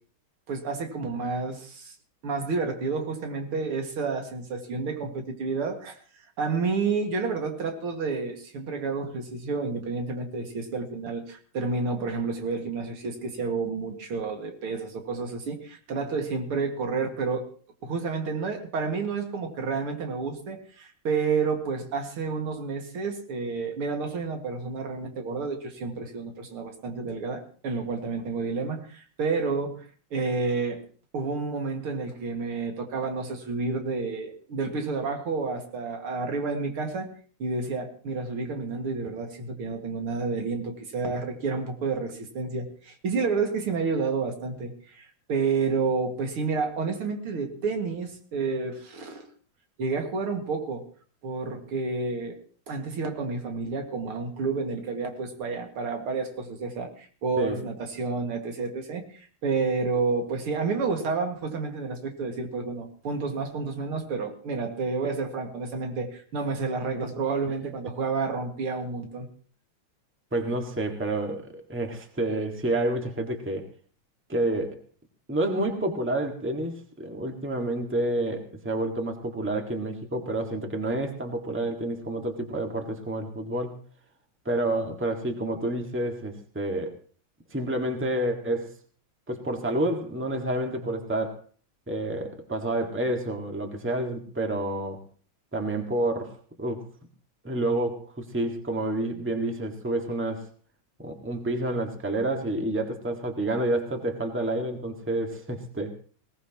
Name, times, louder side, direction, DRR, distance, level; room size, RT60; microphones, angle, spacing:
voice 1, 0.5-2.0 2.2-6.0 6.4-17.5 17.8-29.9 30.1-30.8 31.1-37.1 37.4-49.3 49.8-50.8 51.2-52.4 52.7-69.3, right 4 dB, 90° right, 3 dB, 2.9 m, -30 dB
voice 2, 70.3-73.7 74.3-74.8 75.3-83.8 84.4-87.0 87.5-88.7 89.3-91.4 91.9-95.0 95.5-96.9 97.4-100.5 101.0-105.9, right 1 dB, 5° right, 3 dB, 1.5 m, -29 dB
20.5 x 18.0 x 3.0 m, 0.42 s
omnidirectional pair, 2.3 m